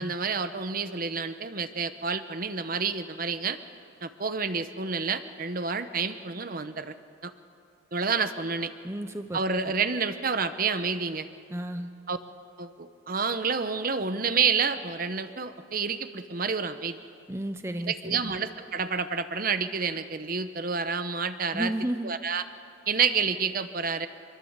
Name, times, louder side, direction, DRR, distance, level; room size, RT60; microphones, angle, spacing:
voice 1, 0.0-3.6 4.0-6.9 7.2-7.3 7.9-8.7 9.3-11.3 12.1-12.2 12.6-17.0 17.8-21.7 22.0-22.4 22.9-24.1, right 5 dB, 45° right, 10 dB, 1.0 m, -29 dB
voice 2, 8.8-9.4 11.5-11.9 17.3-18.3 21.5-22.1, right 1 dB, 15° right, 8 dB, 0.8 m, -32 dB
25.5 x 22.5 x 8.1 m, 2.5 s
head